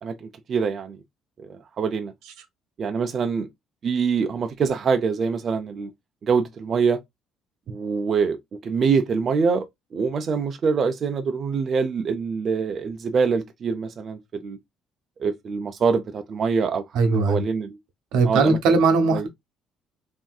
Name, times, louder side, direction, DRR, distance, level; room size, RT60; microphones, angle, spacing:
voice 1, 0.0-1.0 1.4-2.1 2.8-3.5 3.8-5.9 6.2-7.0 7.7-8.4 8.6-9.6 9.9-14.6 15.2-16.8 17.3-17.8 18.2-18.6 19.1-19.3, right 5 dB, 40° right, 0.4 m, -24 dB
voice 2, 16.9-17.4 18.1-19.3, right 4 dB, 85° right, 0.7 m, -19 dB
3.3 x 2.6 x 2.3 m
cardioid pair, 135°, 0 cm